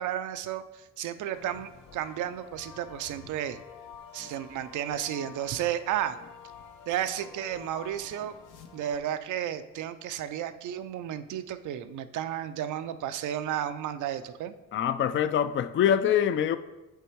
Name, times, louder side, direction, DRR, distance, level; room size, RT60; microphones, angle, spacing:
voice 1, 0.0-3.6 4.1-6.2 6.9-8.3 8.7-14.5, right 10 dB, 75° right, 0.5 m, -33 dB
sound 1, 1.3-9.0, left 7 dB, 80° left, 0.9 m, -49 dB
voice 2, 14.7-16.6, left 9 dB, 40° left, 0.4 m, -24 dB
8.2 x 3.4 x 4.6 m
cardioid pair, 90°, 30 cm